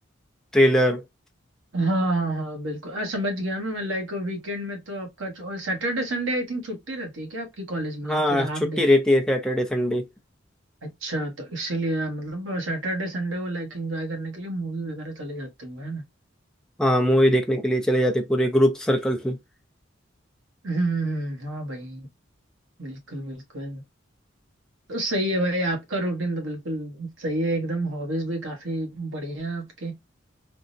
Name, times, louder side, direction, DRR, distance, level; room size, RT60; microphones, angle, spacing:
voice 1, 0.5-1.0 8.0-10.1 16.8-19.4, equal, 5° left, 0.5 m, -21 dB
voice 2, 1.7-8.8 10.8-16.0 20.6-22.1 22.8-23.8 24.9-30.0, right 1 dB, 90° right, 1.1 m, -29 dB
3.6 x 2.0 x 2.5 m
head